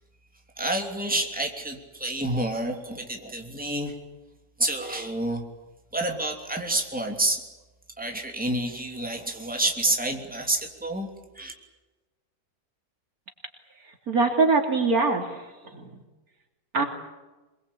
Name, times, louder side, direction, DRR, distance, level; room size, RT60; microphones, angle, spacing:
voice 1, 0.6-3.9 4.6-5.4 5.9-7.4 8.0-11.1 11.3-11.5, right 1 dB, 5° right, 2 dB, 3.0 m, -28 dB
voice 2, 14.1-15.5 15.7-16.0 16.7-16.9, right 3 dB, 70° right, 4 dB, 3.5 m, -23 dB
25.0 x 22.0 x 8.6 m, 1.2 s
omnidirectional pair, 1.6 m